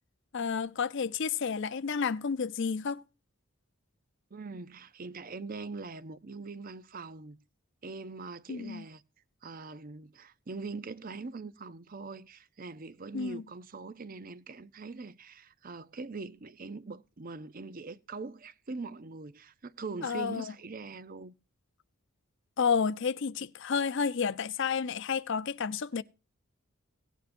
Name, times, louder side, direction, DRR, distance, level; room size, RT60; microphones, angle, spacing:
voice 1, 0.3-3.0 8.5-8.8 13.1-13.4 20.0-20.5 22.6-26.0, left 6 dB, 55° left, 0.5 m, -31 dB
voice 2, 4.3-7.4 7.8-9.0 9.4-21.3, right 4 dB, 40° right, 0.6 m, -42 dB
17.5 x 9.1 x 2.6 m
head